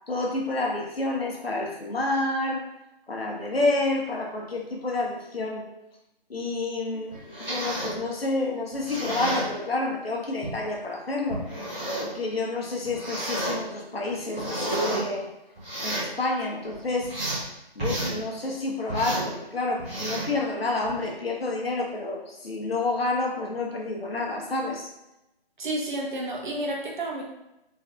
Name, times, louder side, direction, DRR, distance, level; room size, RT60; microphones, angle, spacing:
voice 1, 0.1-2.6 3.1-5.6 6.3-11.4 12.0-15.3 15.8-17.1 17.7-24.9, left 2 dB, 75° left, -1 dB, 1.0 m, -29 dB
sound 1, 7.1-8.0 8.7-9.5 10.4-10.5 11.3-12.1 12.8-13.6 14.1-15.0 15.6-16.1 16.6-17.4 17.8-18.2 18.9-19.3 19.8-20.3 20.8-21.1, right 1 dB, 10° right, 0.7 m, -31 dB
voice 2, 25.6-27.2, right 1 dB, 50° right, -1 dB, 0.9 m, -30 dB
3.3 x 3.1 x 2.4 m, 0.93 s
figure-of-eight pair, 155°, 30 cm